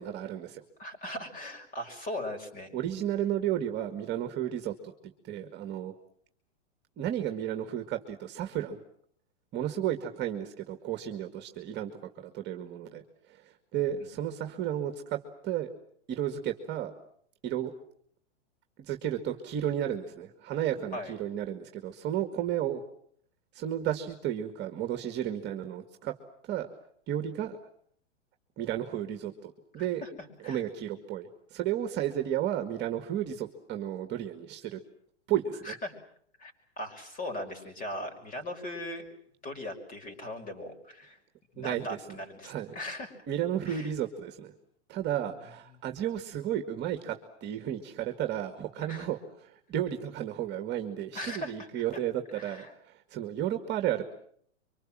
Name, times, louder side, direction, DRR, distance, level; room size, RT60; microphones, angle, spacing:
voice 1, 0.0-0.6 2.7-4.9 5.2-5.9 7.0-8.8 9.5-13.0 13.3-15.7 16.1-16.9 17.4-17.7 18.8-22.8 23.5-26.2 26.5-26.7 27.1-27.6 28.6-30.0 30.4-34.8 35.3-35.7 41.6-42.0 42.4-42.8 43.3-44.5 44.9-54.0, right 11 dB, 30° right, 6 dB, 2.2 m, -33 dB
voice 2, 0.8-2.7 14.0-14.1 20.9-21.1 30.0-30.1 30.4-30.6 35.6-35.9 36.4-39.1 39.4-41.2 41.5-43.1 43.7-43.9 48.8-49.1 51.1-52.0 52.3-52.7, left 1 dB, 20° left, 5 dB, 5.9 m, -39 dB
26.0 x 25.0 x 7.7 m, 0.64 s
hypercardioid pair, 135°, 36 cm